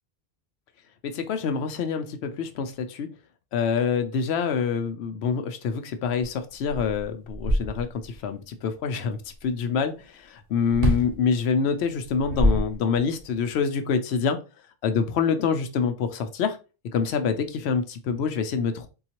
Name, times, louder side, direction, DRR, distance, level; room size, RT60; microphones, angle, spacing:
voice 1, 1.0-3.1 3.5-14.4 14.8-16.6 16.9-18.9, left 6 dB, 85° left, 8 dB, 0.8 m, -26 dB
sound 1, 6.2-6.3 6.7-8.2 10.7-11.2 12.0-13.2, equal, 65° right, 1.0 m, -25 dB
3.8 x 2.4 x 2.9 m, 0.31 s
omnidirectional pair, 1.1 m